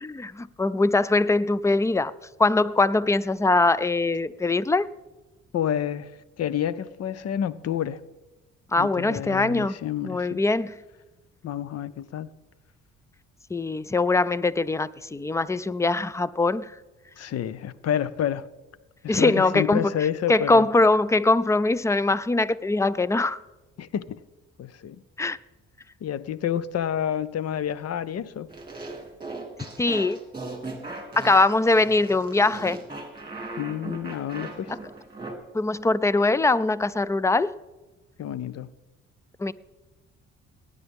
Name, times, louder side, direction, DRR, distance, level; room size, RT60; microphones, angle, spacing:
voice 1, 0.0-2.1 2.4-4.9 8.7-9.8 10.0-10.8 13.5-16.7 19.1-19.9 20.3-23.4 25.2-25.4 29.8-30.2 31.2-32.8 35.5-37.5 39.4-39.5, left 2 dB, 10° left, 0.4 m, -22 dB
voice 2, 5.5-8.0 8.8-10.4 11.4-12.3 17.2-18.5 19.0-20.6 23.8-24.2 24.6-25.0 26.0-28.5 33.6-34.7 38.2-38.7, left 10 dB, 55° left, 0.6 m, -29 dB
sound 1, 28.5-35.3, right 2 dB, 15° right, 2.5 m, -38 dB
18.5 x 9.7 x 3.6 m
cardioid pair, 90°, 30 cm